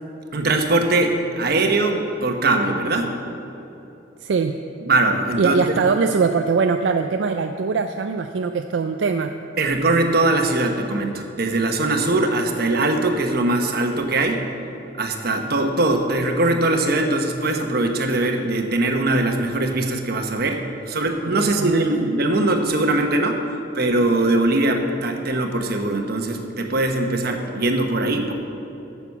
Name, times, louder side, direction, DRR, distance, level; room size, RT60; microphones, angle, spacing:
voice 1, 0.3-3.1 4.8-5.6 9.6-14.4 15.0-28.3, right 2 dB, 60° right, 4 dB, 1.0 m, -21 dB
voice 2, 4.2-4.6 5.4-9.3 21.2-22.1, right 5 dB, 80° right, 6 dB, 0.4 m, -22 dB
9.1 x 7.0 x 7.1 m, 3.0 s
head